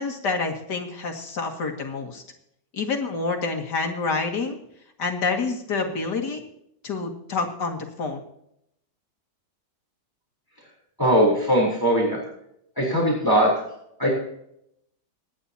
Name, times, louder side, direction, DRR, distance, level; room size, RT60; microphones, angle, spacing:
voice 1, 0.0-2.2 2.7-4.6 5.0-6.4 6.8-8.2, left 4 dB, 70° left, 2 dB, 2.7 m, -28 dB
voice 2, 11.0-12.2 12.8-13.5 14.0-14.1, equal, 10° left, -3 dB, 3.8 m, -20 dB
26.5 x 10.0 x 2.9 m, 0.75 s
omnidirectional pair, 1.9 m